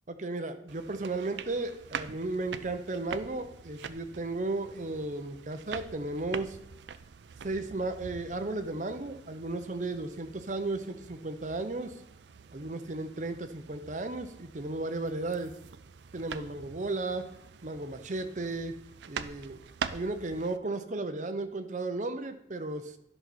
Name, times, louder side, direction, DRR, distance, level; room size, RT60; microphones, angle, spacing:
voice 1, 0.1-6.6 7.4-11.9 12.5-15.5 16.1-17.3 17.6-18.8 19.1-19.6 19.9-22.9, right 2 dB, 40° right, 9 dB, 0.7 m, -34 dB
sound 1, 0.7-20.6, right 6 dB, 75° right, 0.4 m, -45 dB
11.0 x 6.1 x 4.2 m, 0.80 s
head